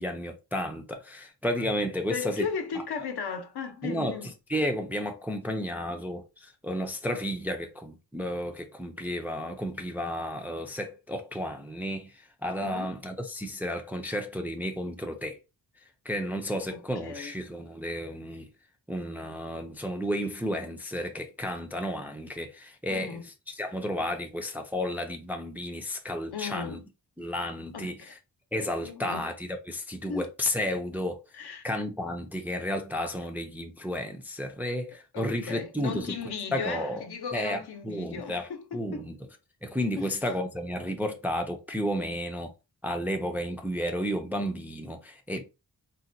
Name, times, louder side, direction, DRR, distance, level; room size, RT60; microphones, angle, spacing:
voice 1, 0.0-2.5 2.8-2.9 3.8-4.1 4.5-12.1 12.4-15.4 16.1-18.5 18.9-23.2 23.5-26.8 27.2-28.0 28.5-31.2 31.6-36.2 36.5-37.0 37.3-39.1 39.6-42.5 42.8-45.4, equal, 5° right, 0.4 m, -32 dB
voice 2, 2.1-4.3 12.6-12.9 16.7-17.3 22.9-23.3 26.3-26.8 27.7-28.1 28.8-29.3 30.1-30.3 31.3-31.7 35.1-39.1 40.0-40.1, left 5 dB, 70° left, 0.7 m, -36 dB
4.0 x 2.1 x 2.5 m
wide cardioid pair, 125°, 41 cm